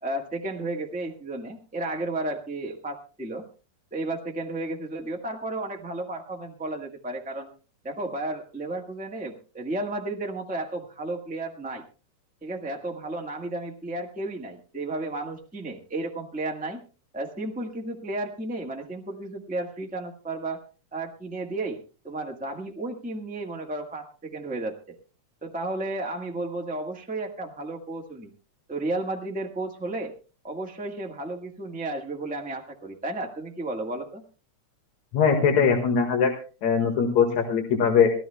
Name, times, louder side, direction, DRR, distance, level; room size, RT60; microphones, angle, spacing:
voice 1, 0.0-3.4 3.9-7.5 7.8-11.8 12.4-16.8 17.1-20.6 20.9-21.8 22.0-25.0 25.4-28.3 28.7-30.1 30.4-34.2, right 2 dB, 10° right, 1 dB, 0.4 m, -33 dB
voice 2, 35.1-36.3 36.6-38.1, left 6 dB, 70° left, 4 dB, 2.9 m, -21 dB
24.5 x 16.0 x 2.2 m, 0.35 s
omnidirectional pair, 3.3 m